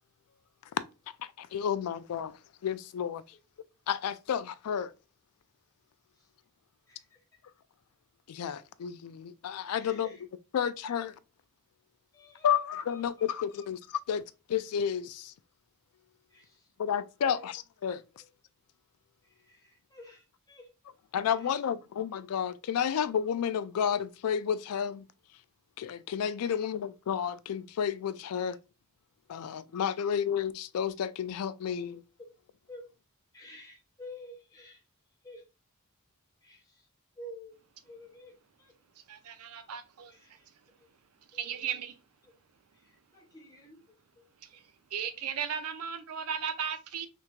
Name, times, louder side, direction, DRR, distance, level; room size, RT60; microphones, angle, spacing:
voice 1, 1.4-2.4 2.6-3.2 3.9-4.9 8.3-10.1 10.5-11.1 12.4-14.2 14.5-15.3 16.8-18.0 21.1-25.0 25.8-28.6 29.3-32.0, left 8 dB, 85° left, 0.4 m, -31 dB
voice 2, 6.9-7.2 9.8-10.2 12.1-12.5 12.9-13.0 13.6-13.7 16.3-16.7 17.2-17.5 19.2-20.7 21.3-21.5 26.4-26.7 28.3-28.6 32.7-32.8 33.3-34.8 35.2-35.4 36.4-36.9 37.2-37.6 37.8-38.3 38.6-38.7 40.1-40.5 40.8-40.9 41.3-41.8 42.2-42.3 42.7-44.2, left 1 dB, 15° left, 1.1 m, -51 dB
voice 3, 39.1-40.1 41.3-41.9 44.9-47.1, right 7 dB, 80° right, 0.6 m, -35 dB
3.4 x 3.1 x 2.4 m
head